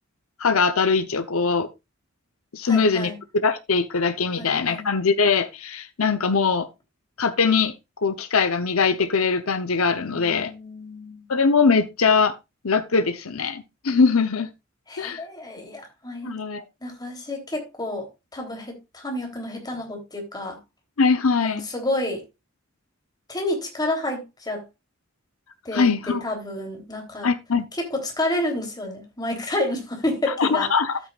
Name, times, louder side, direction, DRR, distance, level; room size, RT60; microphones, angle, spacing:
voice 1, 0.4-1.7 2.5-6.7 7.2-7.7 8.0-10.5 11.3-12.4 12.6-14.5 15.0-15.2 16.2-16.6 21.0-21.6 25.7-26.2 27.2-27.6 30.4-31.0, left 5 dB, 80° left, 0.9 m, -21 dB
voice 2, 2.6-3.2 4.4-4.9 10.1-11.3 14.9-16.3 16.8-20.6 21.4-22.2 23.3-24.6 25.6-27.3 27.7-30.7, left 1 dB, 20° left, 3.2 m, -30 dB
12.5 x 8.6 x 2.4 m
head